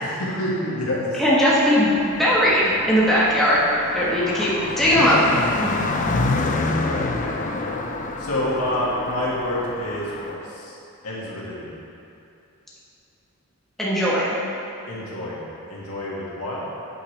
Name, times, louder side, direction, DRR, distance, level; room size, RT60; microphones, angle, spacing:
voice 1, 0.0-1.2 6.2-7.8 8.2-10.8 11.0-11.7 14.9-16.6, left 1 dB, 85° left, -6 dB, 2.0 m, -28 dB
voice 2, 1.2-3.7 3.9-5.2 5.6-5.7 13.8-14.4, equal, ahead, -9 dB, 1.4 m, -19 dB
Car passing by, 1.8-10.3, left 3 dB, 35° left, 0.5 m, -28 dB
8.5 x 8.2 x 3.3 m, 2.7 s
head